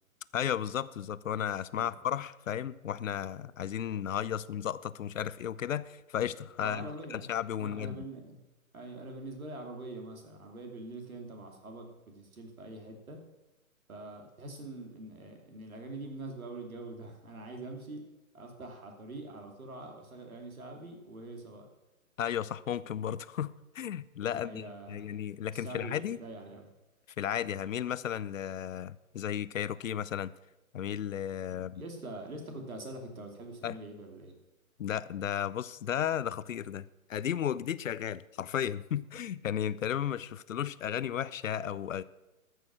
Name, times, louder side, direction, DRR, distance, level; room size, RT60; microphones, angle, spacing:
voice 1, 0.3-8.0 22.2-26.2 27.2-30.3 30.7-31.8 33.6-33.8 34.8-42.0, left 9 dB, 65° left, 0.6 m, -34 dB
voice 2, 6.6-7.3 7.6-8.4 8.7-13.2 13.9-18.0 18.3-21.7 24.3-25.1 25.5-26.7 27.4-27.5 31.5-34.3 39.2-39.4, right 2 dB, 75° right, 2.9 m, -44 dB
13.5 x 6.6 x 6.1 m
hypercardioid pair, 145°, 42 cm